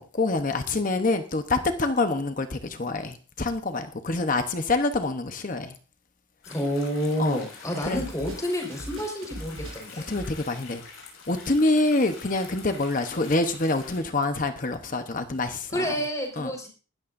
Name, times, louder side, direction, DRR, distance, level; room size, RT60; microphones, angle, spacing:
voice 1, 0.0-5.7 7.2-7.4 7.8-8.0 10.1-10.8 11.3-15.9 16.4-16.5, left 2 dB, 40° left, 8 dB, 1.0 m, -26 dB
sound 1, 6.4-14.0, left 4 dB, 90° left, 6.9 m, -46 dB
voice 2, 6.4-10.1 15.7-16.7, equal, 15° left, 2 dB, 4.7 m, -29 dB
Drum kit, 7.9-10.3, right 1 dB, 90° right, 6.9 m, -39 dB
20.0 x 13.0 x 2.6 m, 0.36 s
head